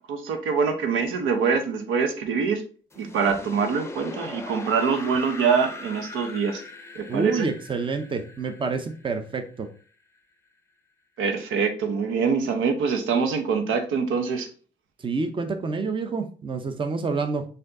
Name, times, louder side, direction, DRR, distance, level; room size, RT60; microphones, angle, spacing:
voice 1, 0.1-2.6 3.0-6.6 6.9-7.5 11.2-14.5, right 5 dB, 85° right, 6 dB, 0.8 m, -24 dB
sound 1, 2.9-9.8, left 2 dB, 15° left, 0.6 m, -40 dB
voice 2, 7.1-9.7 15.0-17.5, right 4 dB, 25° right, 7 dB, 0.6 m, -28 dB
4.3 x 2.7 x 3.7 m, 0.39 s
cardioid pair, 90°, 20 cm